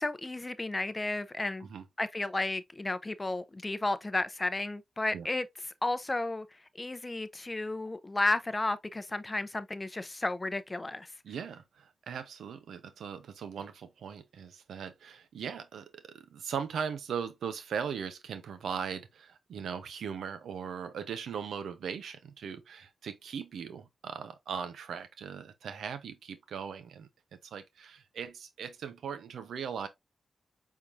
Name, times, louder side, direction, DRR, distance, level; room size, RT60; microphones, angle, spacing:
voice 1, 0.0-1.7 2.0-5.5 5.8-6.5 6.7-11.1, left 2 dB, 25° left, 0.6 m, -33 dB
voice 2, 11.2-27.1 27.5-29.9, right 7 dB, 85° right, 0.7 m, -39 dB
4.6 x 3.7 x 2.5 m
cardioid pair, 50°, 0 cm